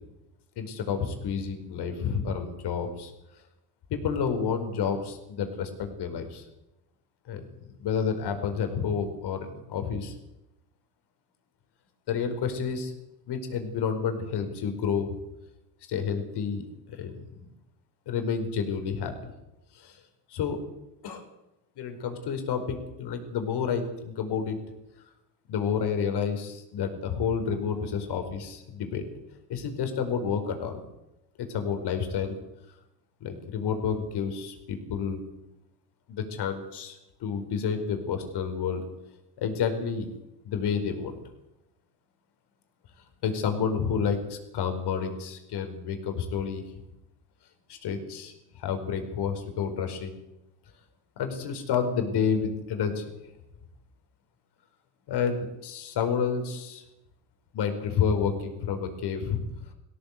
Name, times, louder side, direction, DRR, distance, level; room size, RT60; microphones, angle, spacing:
voice 1, 0.6-3.1 3.9-6.4 7.3-7.4 7.8-10.1 12.1-12.9 13.3-15.2 15.9-17.5 18.1-19.3 19.7-20.0 20.3-20.6 21.0-21.2 21.8-24.6 25.5-29.0 29.5-30.8 31.5-32.3 33.2-35.2 36.1-38.8 39.4-40.1 40.4-41.1 43.2-46.6 47.7-50.2 51.2-53.0 55.1-56.8 57.5-59.4, left 6 dB, 55° left, 6 dB, 5.0 m, -30 dB
18.5 x 17.0 x 8.5 m, 0.93 s
supercardioid pair, 85°, 48 cm